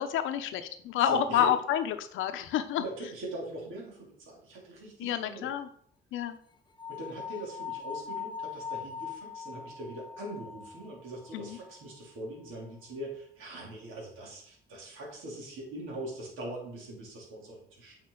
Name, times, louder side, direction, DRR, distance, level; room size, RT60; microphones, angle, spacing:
voice 1, 0.0-2.8 5.0-5.7 6.1-6.4 11.3-11.6, left 10 dB, 85° left, 9 dB, 0.8 m, -29 dB
voice 2, 1.0-1.5 2.8-5.5 6.9-18.0, right 1 dB, 85° right, -3 dB, 3.0 m, -42 dB
sound 1, 6.8-11.9, left 7 dB, 25° left, 0.7 m, -41 dB
8.9 x 5.5 x 3.9 m, 0.62 s
cardioid pair, 90°, 20 cm